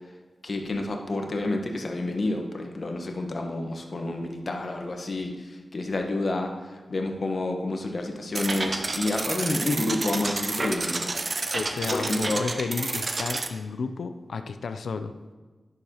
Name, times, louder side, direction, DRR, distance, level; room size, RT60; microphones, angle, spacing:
voice 1, 0.4-11.1 11.9-12.4, left 2 dB, 55° left, 3 dB, 1.1 m, -29 dB
sound 1, 8.3-13.5, right 3 dB, 55° right, 0.6 m, -30 dB
voice 2, 11.5-15.1, left 4 dB, 85° left, 9 dB, 0.4 m, -32 dB
10.5 x 6.4 x 2.9 m, 1.3 s
cardioid pair, 45°, 0 cm